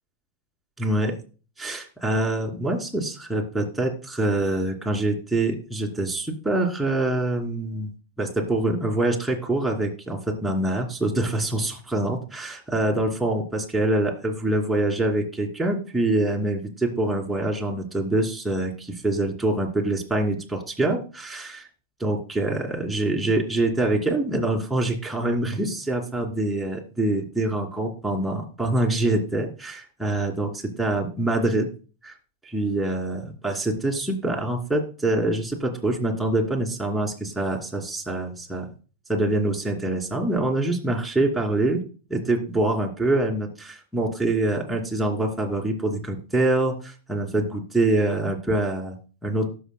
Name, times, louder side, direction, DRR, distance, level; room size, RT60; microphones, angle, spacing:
voice 1, 0.8-1.1 1.6-7.9 8.2-21.7 22.0-31.7 32.0-32.1 32.4-38.7 39.1-41.8 42.1-49.5, right 2 dB, 5° right, -2 dB, 2.7 m, -25 dB
18.0 x 6.8 x 2.2 m, 0.36 s
hypercardioid pair, 110°, 0 cm